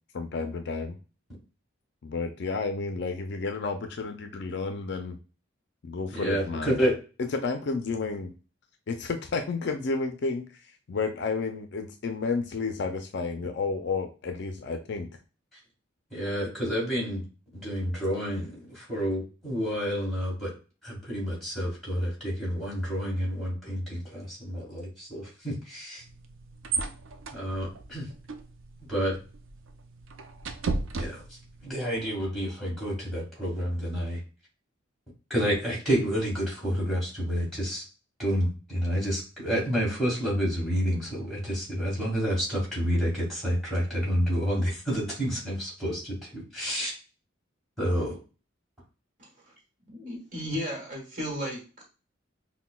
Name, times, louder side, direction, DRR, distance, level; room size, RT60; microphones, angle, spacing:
voice 1, 0.1-1.0 2.0-5.2 5.8-6.7 7.3-8.3 8.9-10.4 10.9-15.1, left 4 dB, 55° left, 7 dB, 0.4 m, -31 dB
voice 2, 6.1-6.9 15.5-15.6 16.1-17.2 17.5-20.5 20.8-26.0 27.3-28.1 28.9-29.2 31.0-31.2 31.6-34.2 35.3-37.8 38.2-46.9 47.8-48.2, equal, ahead, -4 dB, 1.9 m, -29 dB
sound 1, 26.0-31.7, right 4 dB, 75° right, 0.5 m, -36 dB
voice 3, 49.9-51.8, equal, 40° right, -1 dB, 1.2 m, -34 dB
5.7 x 2.1 x 2.2 m, 0.33 s
head